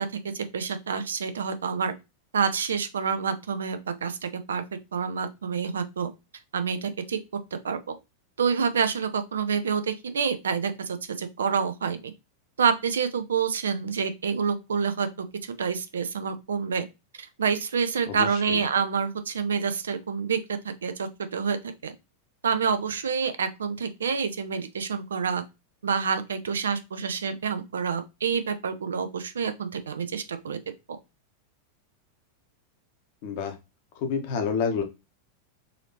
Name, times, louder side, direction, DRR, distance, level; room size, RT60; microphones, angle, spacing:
voice 1, 0.0-1.9 2.3-4.6 4.9-6.1 6.5-7.2 7.6-8.0 8.4-12.1 12.6-15.3 15.6-16.8 17.2-21.6 21.8-21.9 22.4-25.4 25.8-30.6, right 6 dB, 70° right, 0.5 m, -28 dB
voice 2, 18.1-18.6 33.2-33.6 33.9-34.8, left 6 dB, 50° left, 0.9 m, -29 dB
4.0 x 2.8 x 2.8 m
figure-of-eight pair, 90°, 0 cm